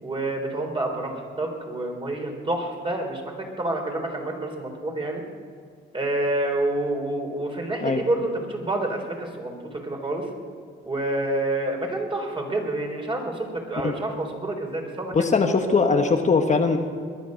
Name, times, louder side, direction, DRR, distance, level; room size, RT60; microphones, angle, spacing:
voice 1, 0.0-5.2 5.9-10.3 10.8-15.3, right 2 dB, 25° right, 2 dB, 3.9 m, -28 dB
voice 2, 15.1-16.8, left 4 dB, 35° left, 4 dB, 1.2 m, -20 dB
21.5 x 9.9 x 6.4 m, 2.1 s
cardioid pair, 90°, 20 cm